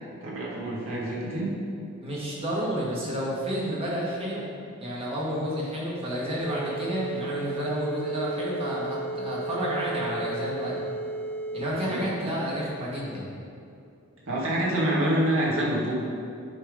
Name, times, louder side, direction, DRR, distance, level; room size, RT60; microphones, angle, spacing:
voice 1, 0.2-1.5 11.9-12.1 14.3-15.9, right 1 dB, 65° right, -6 dB, 1.9 m, -26 dB
voice 2, 2.0-10.8 11.5-13.3, equal, 25° right, -6 dB, 1.6 m, -30 dB
sound 1, 6.4-11.7, right 2 dB, 45° left, 1.3 m, -34 dB
9.9 x 3.7 x 4.9 m, 2.4 s
head